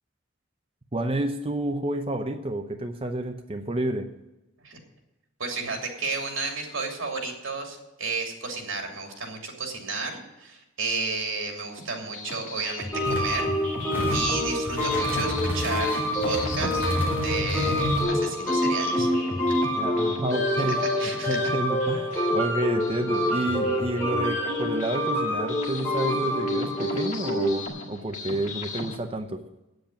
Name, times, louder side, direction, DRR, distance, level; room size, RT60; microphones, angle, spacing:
voice 1, 0.9-4.1 19.8-20.8 21.3-29.4, right 1 dB, 30° right, 5 dB, 0.7 m, -29 dB
voice 2, 5.4-13.5 14.1-15.9 16.2-16.8 17.1-19.2 21.0-21.5 22.1-22.3, right 3 dB, 80° right, 1 dB, 2.9 m, -32 dB
sound 1, 11.8-29.0, left 3 dB, 35° left, 1.7 m, -38 dB
sound 2, 12.9-27.7, left 1 dB, 10° left, 3.7 m, -27 dB
sound 3, 13.0-13.3 13.7-14.3 14.7-18.0, left 1 dB, 10° right, 3.1 m, -30 dB
8.7 x 7.8 x 9.2 m, 0.96 s
head